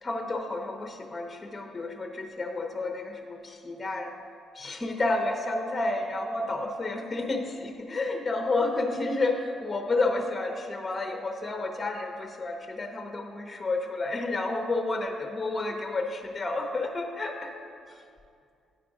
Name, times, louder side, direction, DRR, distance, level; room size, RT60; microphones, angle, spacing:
voice 1, 0.0-4.1 4.5-17.5 17.9-18.0, left 2 dB, 30° left, 4 dB, 0.8 m, -30 dB
9.3 x 5.0 x 4.8 m, 2.3 s
cardioid pair, 90°, 0 cm